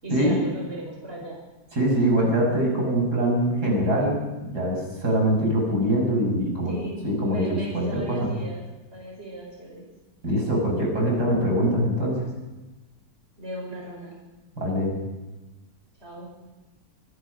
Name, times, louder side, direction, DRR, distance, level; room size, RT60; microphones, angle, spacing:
voice 1, 0.0-1.4 6.7-8.6 8.9-9.8 13.4-14.2 16.0-16.5, right 1 dB, 35° right, -1 dB, 5.7 m, -37 dB
voice 2, 1.7-6.7 7.0-8.3 10.2-12.2 14.6-14.9, right 1 dB, 70° right, -1 dB, 6.9 m, -23 dB
24.5 x 20.5 x 5.3 m, 1.1 s
omnidirectional pair, 1.8 m